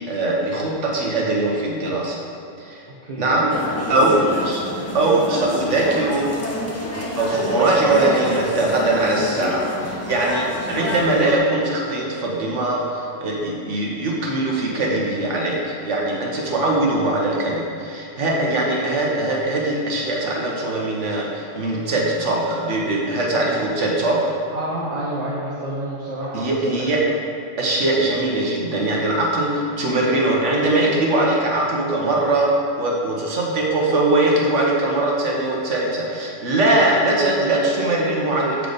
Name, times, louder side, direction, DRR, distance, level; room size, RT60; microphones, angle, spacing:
voice 1, 0.0-2.2 2.6-2.8 3.2-3.5 3.9-4.7 4.9-6.3 7.2-24.3 26.3-27.0 27.6-38.7, right 2 dB, 80° right, -2 dB, 1.4 m, -21 dB
voice 2, 2.9-3.2 4.1-4.2 24.5-26.9, right 1 dB, 40° right, -7 dB, 0.9 m, -29 dB
sound 1, 3.5-11.4, left 1 dB, 20° left, 0.5 m, -28 dB
7.4 x 4.0 x 5.0 m, 2.6 s
omnidirectional pair, 1.2 m